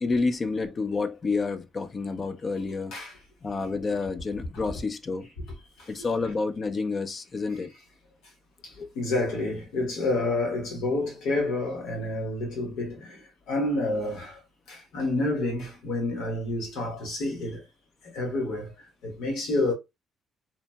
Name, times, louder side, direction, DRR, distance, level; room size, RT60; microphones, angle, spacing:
voice 1, 0.0-2.9 3.4-5.3 5.9-7.7 8.8-8.9, left 4 dB, 40° left, 0.5 m, -29 dB
voice 2, 8.6-14.4 14.7-17.6 18.0-19.7, left 2 dB, 90° left, 1.1 m, -29 dB
2.9 x 2.5 x 2.2 m
cardioid pair, 90°, 0 cm